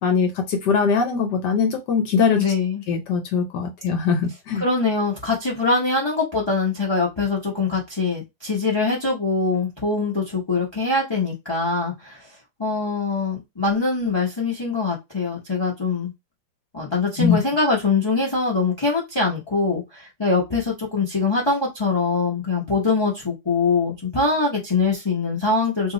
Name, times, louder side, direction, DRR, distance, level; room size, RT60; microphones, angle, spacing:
voice 1, 0.0-2.4 2.9-4.6 17.2-17.4, left 5 dB, 70° left, 1.2 m, -21 dB
voice 2, 2.4-2.8 4.5-12.2 12.6-16.1 16.7-25.9, left 3 dB, 30° left, 0.5 m, -23 dB
2.9 x 2.4 x 3.8 m
omnidirectional pair, 2.0 m